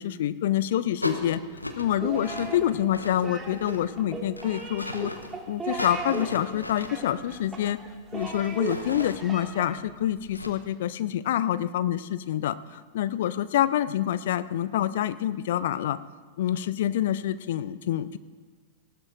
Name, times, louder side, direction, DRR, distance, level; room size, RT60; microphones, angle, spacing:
voice 1, 0.0-1.4 1.8-5.1 5.5-7.8 8.1-16.0 16.4-18.2, left 11 dB, 55° left, 16 dB, 0.4 m, -27 dB
sound 1, 1.0-10.5, left 1 dB, 85° left, 1.0 m, -39 dB
sound 2, 2.0-9.8, right 4 dB, 15° right, 1.9 m, -37 dB
18.5 x 16.0 x 2.5 m, 1.4 s
figure-of-eight pair, 90°, 0 cm